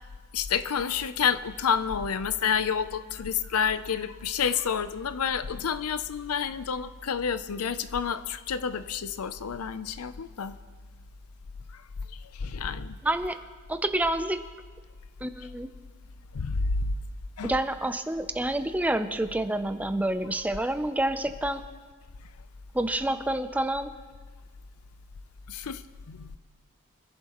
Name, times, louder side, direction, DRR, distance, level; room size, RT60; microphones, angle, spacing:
voice 1, 0.3-10.6 11.7-11.8 12.2-13.0 16.3-16.8 17.4-17.5 25.5-26.4, left 7 dB, 80° left, 14 dB, 0.6 m, -29 dB
voice 2, 13.0-13.4 13.7-14.4 15.2-15.7 17.4-21.6 22.7-23.9, right 1 dB, 5° right, 10 dB, 0.5 m, -28 dB
24.5 x 11.0 x 3.0 m, 1.5 s
head